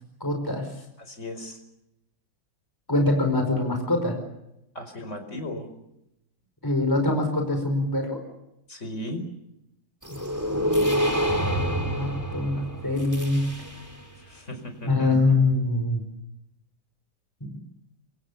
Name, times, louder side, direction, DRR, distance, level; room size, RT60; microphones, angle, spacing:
voice 1, 0.2-0.7 2.9-4.2 6.6-8.2 10.1-10.2 10.5-11.1 11.4-13.5 14.9-16.0 17.4-17.6, left 2 dB, 10° left, 5 dB, 5.0 m, -24 dB
voice 2, 1.0-1.6 4.8-5.7 8.7-9.2 14.2-15.2, left 1 dB, 35° left, 7 dB, 5.3 m, -36 dB
sound 1, 10.0-14.0, equal, 10° right, 4.4 m, -27 dB
27.5 x 25.5 x 7.0 m, 0.85 s
omnidirectional pair, 2.2 m